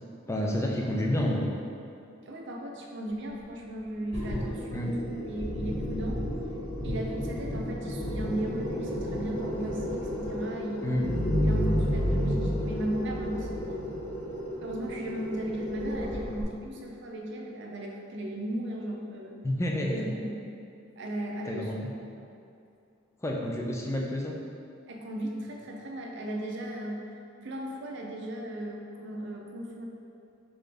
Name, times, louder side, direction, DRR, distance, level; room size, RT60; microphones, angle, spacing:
voice 1, 0.3-1.5 4.7-5.0 10.8-11.1 19.4-20.2 21.4-21.9 23.2-24.3, left 1 dB, 15° left, -1 dB, 0.4 m, -29 dB
voice 2, 2.3-6.2 6.8-10.9 11.4-13.8 14.6-19.3 19.9-20.5 21.0-21.7 24.9-27.1 27.4-29.9, right 1 dB, 60° right, 0 dB, 0.5 m, -36 dB
sound 1, 4.1-16.4, equal, 35° left, 1.5 m, -31 dB
4.0 x 3.7 x 3.4 m, 2.6 s
head